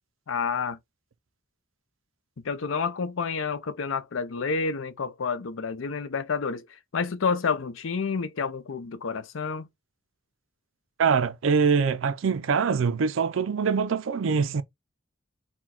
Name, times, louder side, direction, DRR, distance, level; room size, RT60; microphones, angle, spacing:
voice 1, 0.3-0.8 2.4-9.7, left 5 dB, 90° left, 0.6 m, -29 dB
voice 2, 11.0-14.6, right 5 dB, 80° right, 0.4 m, -24 dB
4.3 x 2.2 x 4.2 m
head